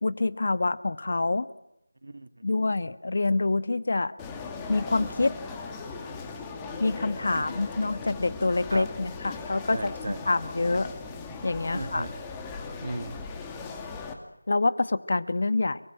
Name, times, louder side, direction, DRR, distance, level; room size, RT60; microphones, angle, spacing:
voice 1, 0.0-1.5 2.4-4.1 4.7-5.4 6.8-9.9 10.3-10.9 11.4-12.0 14.5-15.8, left 3 dB, 50° left, 14 dB, 1.4 m, -26 dB
voice 2, 2.0-2.7 7.3-7.5 8.7-8.9 9.7-10.2 11.7-12.1 12.8-13.1, right 2 dB, 60° right, 10 dB, 2.1 m, -36 dB
sound 1, 4.2-14.1, left 4 dB, 10° left, 2.2 m, -38 dB
30.0 x 20.5 x 8.9 m, 0.87 s
figure-of-eight pair, 175°, 0 cm